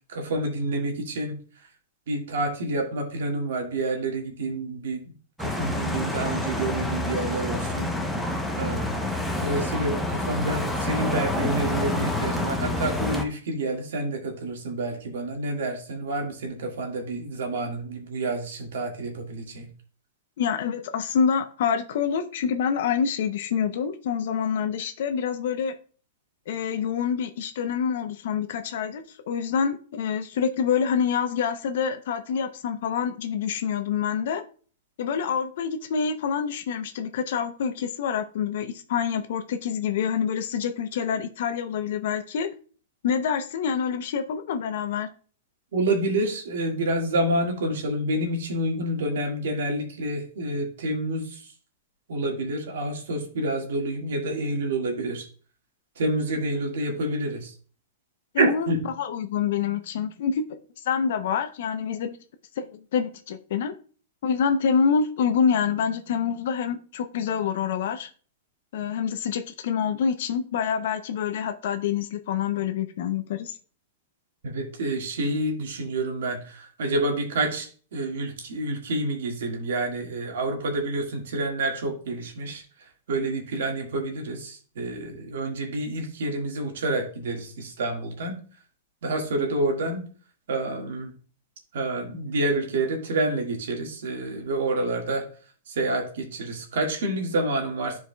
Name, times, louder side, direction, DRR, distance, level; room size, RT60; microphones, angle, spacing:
voice 1, 0.1-1.4 2.1-5.0 5.4-7.9 8.6-9.1 9.4-19.7 45.7-51.4 52.1-55.3 56.0-57.5 58.4-58.8 74.4-82.6 83.1-88.4 89.0-90.0 90.5-91.1 91.7-95.3 95.7-98.0, right 2 dB, 80° right, 2 dB, 1.8 m, -28 dB
sound 1, 5.4-13.2, left 1 dB, ahead, 0.7 m, -28 dB
voice 2, 20.4-25.7 26.5-34.4 35.0-42.5 43.0-45.1 58.3-58.7 59.0-60.6 60.8-62.2 62.6-63.7 64.2-68.1 68.7-73.6, left 7 dB, 65° left, 8 dB, 0.6 m, -26 dB
11.0 x 4.7 x 2.3 m, 0.41 s
hypercardioid pair, 150°, 0 cm